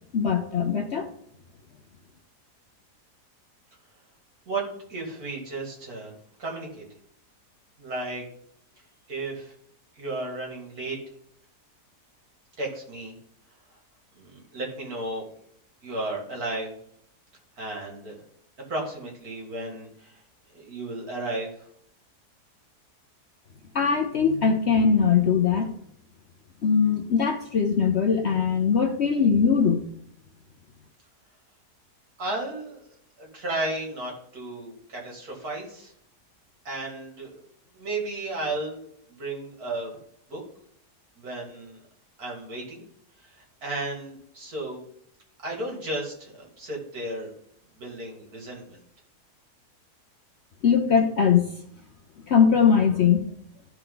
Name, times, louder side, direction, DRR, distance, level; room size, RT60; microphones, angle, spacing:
voice 1, 0.1-1.1 23.7-25.7 26.6-29.8 50.6-51.5 52.3-53.2, left 6 dB, 55° left, 4 dB, 0.8 m, -21 dB
voice 2, 4.5-6.1 6.4-6.9 7.8-8.2 9.1-9.5 10.0-11.0 12.6-13.1 14.2-15.3 15.8-16.7 17.6-18.2 18.7-20.2 20.5-21.7 32.2-32.8 33.2-35.9 36.6-37.4 37.7-38.8 39.2-40.0 40.3-40.4 41.2-41.8 42.2-42.8 43.2-44.8 45.4-47.3 47.7-48.8, right 2 dB, 65° right, -1 dB, 2.8 m, -34 dB
13.5 x 4.6 x 3.9 m, 0.69 s
omnidirectional pair, 1.7 m